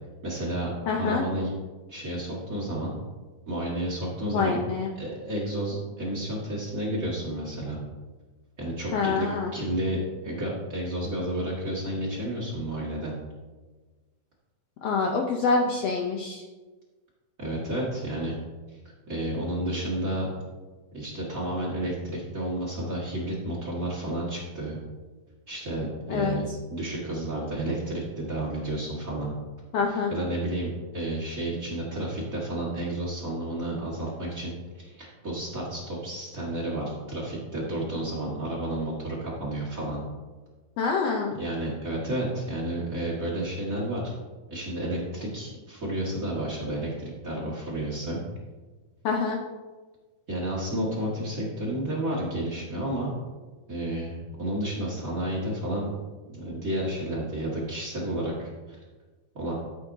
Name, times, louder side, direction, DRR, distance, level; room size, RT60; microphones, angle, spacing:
voice 1, 0.2-1.5 1.9-3.0 3.5-4.6 4.9-7.8 8.6-13.1 17.4-18.4 19.1-20.3 20.9-24.8 25.5-29.3 29.9-40.0 41.4-44.1 44.5-48.2 50.3-53.1 53.7-55.9 56.3-58.5 59.3-59.5, right 1 dB, 35° right, -5 dB, 1.5 m, -31 dB
voice 2, 0.9-1.2 4.3-4.9 8.9-9.5 14.8-16.4 26.1-26.4 29.7-30.1 40.8-41.3 49.0-49.4, left 4 dB, 75° left, 1 dB, 1.5 m, -26 dB
13.0 x 7.6 x 2.7 m, 1.3 s
omnidirectional pair, 3.6 m